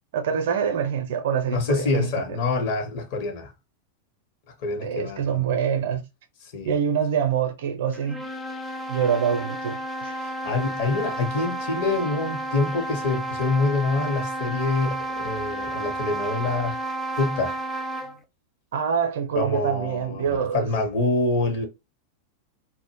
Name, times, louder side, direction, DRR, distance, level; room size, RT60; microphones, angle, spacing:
voice 1, 0.1-2.2 4.8-6.0 6.6-8.2 8.9-10.1 18.7-20.7, right 7 dB, 55° right, 0.5 m, -25 dB
voice 2, 1.4-3.5 4.6-5.5 6.4-6.8 10.2-16.8 17.2-17.6 19.3-21.7, left 3 dB, 50° left, 0.8 m, -26 dB
sound 1, 7.9-18.2, right 2 dB, 10° left, 0.3 m, -31 dB
2.1 x 2.0 x 3.0 m
figure-of-eight pair, 90°, 0 cm